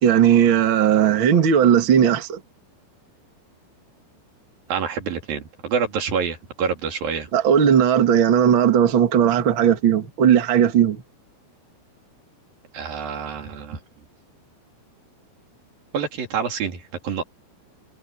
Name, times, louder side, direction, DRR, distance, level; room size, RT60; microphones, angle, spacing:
voice 1, 0.0-2.4 7.3-11.0, right 9 dB, 80° right, 1.1 m, -17 dB
voice 2, 4.7-7.3 12.7-13.8 15.9-17.2, right 6 dB, 50° right, 4.5 m, -27 dB
omnidirectional pair, 5.6 m